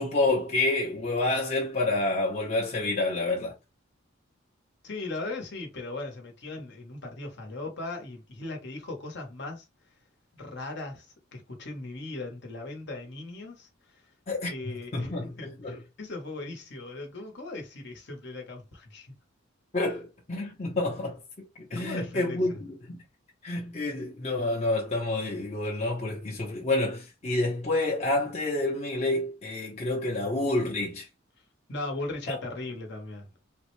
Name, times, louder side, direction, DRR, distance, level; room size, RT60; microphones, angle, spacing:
voice 1, 0.0-3.5 14.3-15.8 19.7-21.2 21.7-23.0 23.4-31.1 32.3-32.4, left 2 dB, 35° left, 0.8 m, -28 dB
voice 2, 4.8-9.7 10.3-13.7 13.9-14.0 14.5-19.1 21.7-22.6 31.7-33.3, left 2 dB, 55° left, 1.0 m, -38 dB
3.6 x 2.1 x 3.1 m
head